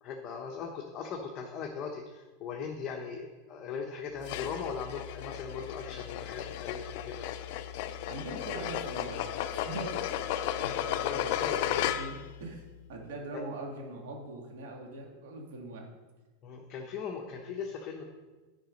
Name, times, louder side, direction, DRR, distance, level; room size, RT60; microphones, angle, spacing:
voice 1, 0.0-7.3 11.0-11.6 16.4-18.0, left 6 dB, 30° left, 1 dB, 0.9 m, -39 dB
sound 1, 4.2-12.3, left 11 dB, 55° left, 0.5 m, -34 dB
voice 2, 8.1-10.1 10.6-12.6 12.9-15.9, right 2 dB, 75° right, 1 dB, 2.2 m, -42 dB
9.9 x 5.0 x 5.3 m, 1.3 s
supercardioid pair, 145°, 0 cm